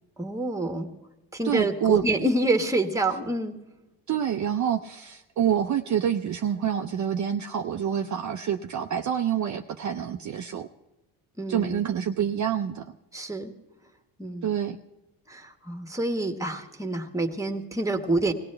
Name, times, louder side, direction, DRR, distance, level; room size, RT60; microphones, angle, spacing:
voice 1, 0.2-0.9 1.3-3.6 11.4-11.8 13.1-13.5 14.2-14.5 15.3-18.3, right 2 dB, 5° right, 5 dB, 1.4 m, -27 dB
voice 2, 1.4-2.1 4.1-10.7 11.5-12.9 14.4-14.8, right 9 dB, 45° right, 5 dB, 0.6 m, -27 dB
20.5 x 16.5 x 3.3 m, 0.99 s
supercardioid pair, 75°, 42 cm